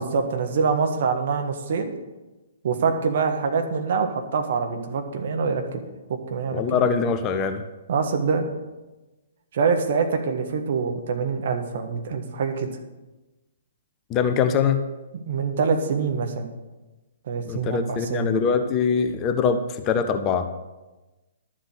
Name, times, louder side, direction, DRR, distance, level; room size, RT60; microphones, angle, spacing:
voice 1, 0.0-1.9 2.6-5.8 6.3-6.6 7.9-8.5 9.5-12.7 15.1-16.5 17.3-18.4, right 5 dB, 50° right, 5 dB, 1.5 m, -25 dB
voice 2, 6.5-7.6 14.1-14.8 17.5-20.5, left 6 dB, 25° left, 8 dB, 0.8 m, -23 dB
11.5 x 7.7 x 6.5 m, 1.1 s
figure-of-eight pair, 120°, 0 cm